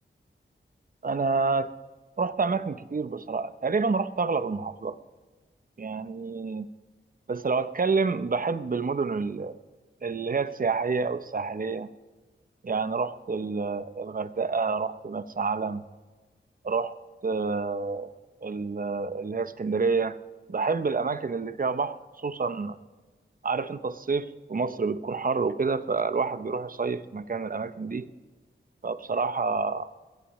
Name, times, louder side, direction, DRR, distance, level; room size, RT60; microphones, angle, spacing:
voice 1, 1.0-1.7 2.2-5.0 5.8-6.7 7.3-9.6 10.0-11.9 12.6-15.8 16.6-16.9 17.2-18.1 18.4-20.2 20.5-22.8 23.4-28.1 28.8-29.9, right 4 dB, 45° right, 12 dB, 0.6 m, -28 dB
21.0 x 16.0 x 3.1 m, 1.3 s
wide cardioid pair, 95°, 21 cm